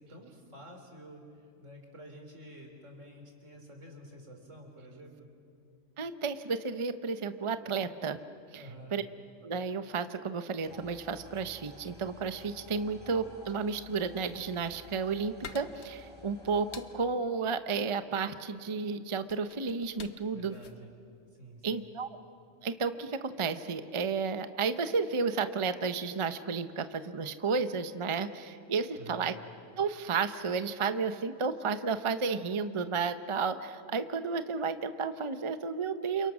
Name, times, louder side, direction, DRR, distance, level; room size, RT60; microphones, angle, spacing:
voice 1, 0.0-5.3 8.6-8.9 20.3-20.9 21.4-21.8 29.0-29.3, right 1 dB, 80° right, 2 dB, 4.3 m, -50 dB
voice 2, 6.0-8.2 8.5-8.6 8.9-9.0 9.4-20.5 21.6-22.1 22.6-29.3 29.8-36.3, right 5 dB, 30° right, 10 dB, 0.7 m, -32 dB
sound 1, 10.7-17.0, left 1 dB, 10° right, 4.6 m, -53 dB
sound 2, 15.4-22.0, left 5 dB, 60° left, 1.3 m, -51 dB
29.5 x 28.0 x 6.1 m, 2.3 s
omnidirectional pair, 1.3 m